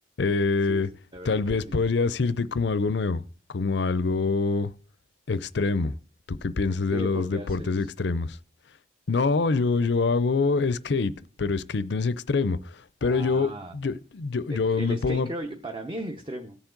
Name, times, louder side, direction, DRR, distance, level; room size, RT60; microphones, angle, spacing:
voice 1, 0.2-0.9 1.3-3.2 3.5-4.7 5.3-5.9 6.3-8.4 9.1-15.3, left 4 dB, 60° left, 0.5 m, -25 dB
voice 2, 1.1-1.8 6.9-7.9 13.0-13.7 14.5-16.6, equal, 25° right, 0.8 m, -36 dB
16.5 x 7.2 x 3.8 m
head